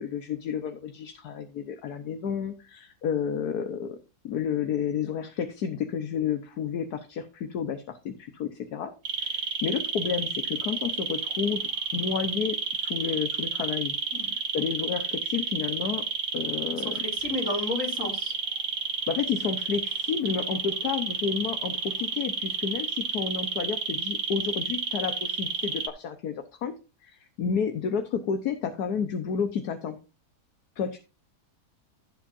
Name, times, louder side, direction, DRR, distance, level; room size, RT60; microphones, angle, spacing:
voice 1, 0.0-4.0 4.2-8.9 9.2-11.6 11.9-13.9 14.5-16.0 16.3-16.9 19.1-26.7 27.0-30.0 30.8-31.0, left 7 dB, 80° left, 7 dB, 1.5 m, -31 dB
sound 1, 9.0-25.9, right 4 dB, 70° right, 2.0 m, -30 dB
voice 2, 16.7-18.3, left 3 dB, 55° left, 2 dB, 3.4 m, -32 dB
16.0 x 7.4 x 2.6 m, 0.30 s
omnidirectional pair, 1.7 m